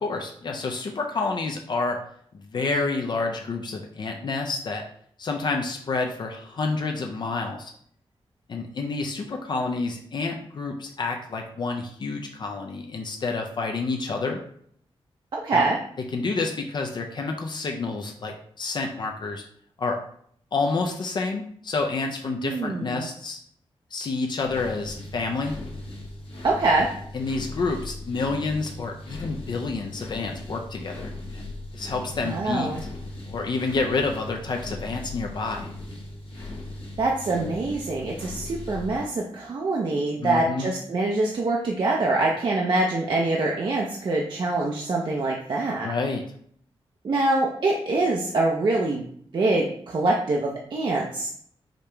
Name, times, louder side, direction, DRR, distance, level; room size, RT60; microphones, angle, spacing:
voice 1, 0.0-2.0 2.3-4.8 5.2-7.7 8.5-14.4 15.5-15.6 16.1-19.4 19.8-20.0 20.5-23.4 23.9-25.5 27.1-32.7 33.2-35.7 40.2-40.7 45.8-46.2, left 3 dB, 50° left, 2 dB, 0.5 m, -29 dB
voice 2, 15.3-15.8 22.4-23.1 26.4-26.9 32.2-32.8 37.0-45.9 47.0-49.0 49.3-51.3, right 2 dB, 50° right, -1 dB, 0.6 m, -24 dB
sound 1, 24.4-39.0, left 2 dB, 65° left, 1.1 m, -38 dB
5.0 x 2.8 x 3.3 m, 0.64 s
wide cardioid pair, 160°, 10 cm